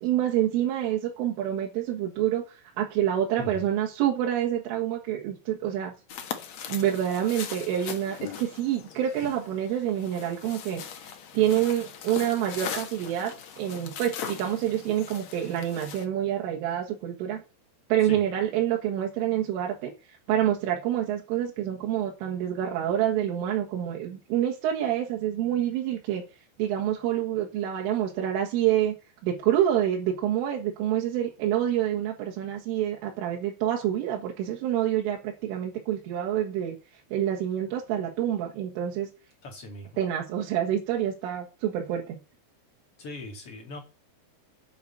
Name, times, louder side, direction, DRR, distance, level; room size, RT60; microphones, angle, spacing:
voice 1, 0.0-5.9 6.7-10.8 11.3-17.4 17.9-19.9 20.3-26.2 26.6-29.0 29.2-36.8 37.1-39.1 40.0-42.2, right 11 dB, 80° right, -1 dB, 4.2 m, -27 dB
sound 1, 6.1-16.0, left 8 dB, 85° left, 1.5 m, -40 dB
voice 2, 39.4-40.0 43.0-43.8, left 1 dB, 40° left, 3 dB, 2.4 m, -40 dB
8.4 x 8.2 x 8.0 m, 0.31 s
omnidirectional pair, 5.6 m